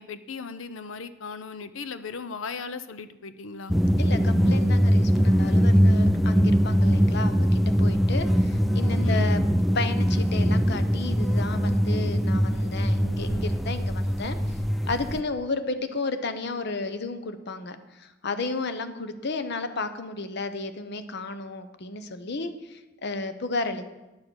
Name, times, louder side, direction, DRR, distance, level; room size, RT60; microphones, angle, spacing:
voice 1, 0.0-3.8 9.0-9.3, left 5 dB, 90° left, 13 dB, 0.7 m, -37 dB
sound 1, 3.7-15.2, equal, ahead, 0.4 m, -22 dB
voice 2, 4.0-9.4 9.7-14.6 14.9-23.8, left 3 dB, 60° left, 10 dB, 0.8 m, -33 dB
10.5 x 7.3 x 6.3 m, 1.0 s
head